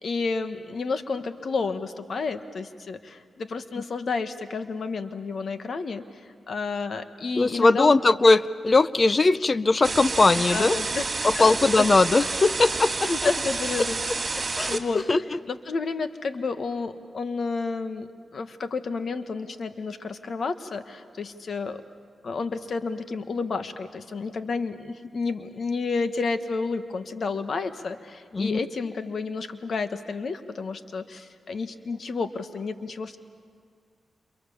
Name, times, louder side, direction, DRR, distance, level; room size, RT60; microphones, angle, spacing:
voice 1, 0.0-6.0 6.5-8.0 10.5-11.1 11.3-11.8 13.1-14.0 14.7-15.0 15.5-21.8 22.2-33.2, left 4 dB, 65° left, 9 dB, 1.4 m, -30 dB
voice 2, 7.4-10.8 11.2-13.3 14.6-14.8 15.1-15.4 28.3-28.6, left 3 dB, 40° left, 16 dB, 0.7 m, -20 dB
sound 1, 9.8-14.8, right 3 dB, 35° right, 3.3 m, -29 dB
29.0 x 28.5 x 7.2 m, 2.1 s
cardioid pair, 65°, 0 cm